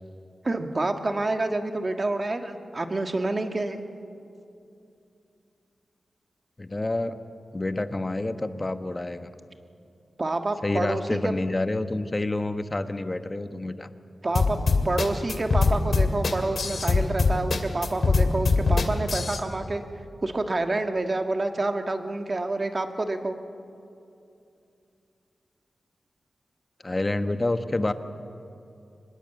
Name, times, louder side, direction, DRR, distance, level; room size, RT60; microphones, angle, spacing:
voice 1, 0.4-3.8 10.2-11.3 14.2-14.6 14.8-19.8 20.2-23.3, right 2 dB, 40° right, 6 dB, 1.7 m, -28 dB
voice 2, 6.6-7.2 7.5-9.3 10.6-13.9 26.8-27.9, left 2 dB, 25° left, 9 dB, 1.2 m, -28 dB
sound 1, 14.3-19.4, left 4 dB, 70° left, 2.4 m, -22 dB
24.5 x 20.5 x 8.2 m, 2.6 s
cardioid pair, 70°, 0 cm